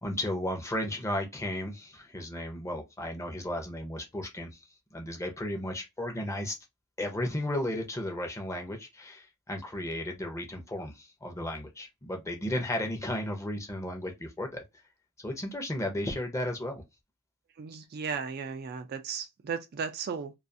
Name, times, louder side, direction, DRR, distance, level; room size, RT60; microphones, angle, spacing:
voice 1, 0.0-4.6 4.9-6.6 7.0-14.6 15.2-16.8, left 1 dB, 15° left, 0.6 m, -34 dB
voice 2, 17.6-20.3, right 6 dB, 45° right, 0.3 m, -35 dB
2.4 x 2.4 x 2.6 m
head